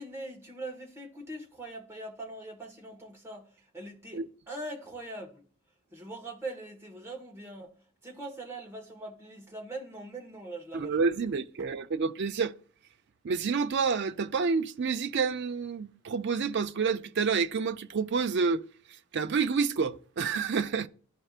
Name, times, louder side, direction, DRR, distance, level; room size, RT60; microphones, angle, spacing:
voice 1, 0.0-5.4 5.9-11.0 11.6-11.7, right 2 dB, 10° right, 1.4 m, -42 dB
voice 2, 10.7-12.5 13.2-18.6 19.1-20.9, right 5 dB, 50° right, 0.4 m, -28 dB
12.0 x 4.3 x 2.4 m
head